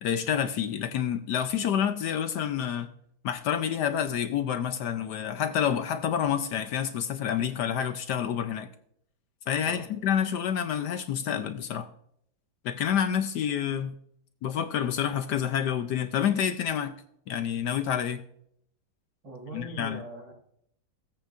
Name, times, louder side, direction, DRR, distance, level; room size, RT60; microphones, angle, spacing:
voice 1, 0.0-2.9 3.2-8.7 9.5-11.9 12.6-13.9 14.4-16.9 17.3-18.2 19.5-20.0, left 9 dB, 70° left, 9 dB, 1.1 m, -28 dB
voice 2, 19.2-20.3, right 2 dB, 80° right, -2 dB, 5.7 m, -41 dB
17.5 x 8.4 x 2.5 m, 0.70 s
omnidirectional pair, 2.1 m